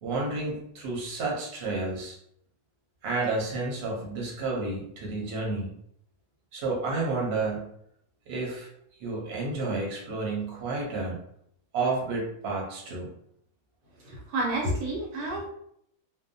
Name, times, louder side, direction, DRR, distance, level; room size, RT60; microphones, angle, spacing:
voice 1, 0.0-2.2 3.0-5.7 6.5-7.7 8.3-8.7 9.0-11.2 11.7-13.1, right 3 dB, 50° right, -2 dB, 0.9 m, -30 dB
voice 2, 14.0-15.5, right 1 dB, 80° right, -2 dB, 1.2 m, -30 dB
2.6 x 2.1 x 2.6 m, 0.71 s
omnidirectional pair, 1.6 m